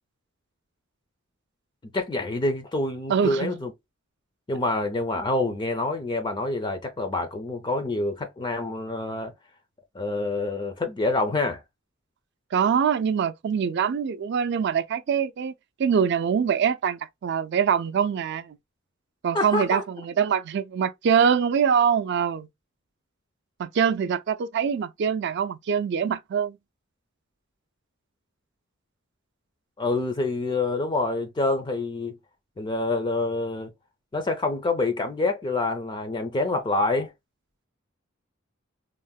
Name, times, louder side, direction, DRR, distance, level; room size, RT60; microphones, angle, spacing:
voice 1, 1.9-3.7 4.5-9.3 9.9-11.6 19.3-19.8 29.8-32.2 32.6-33.7 34.1-37.1, left 2 dB, 25° left, 0.4 m, -27 dB
voice 2, 3.1-3.5 12.5-15.5 15.8-18.6 19.2-22.5 23.6-26.6, right 7 dB, 55° right, 0.3 m, -24 dB
3.6 x 2.1 x 2.2 m
head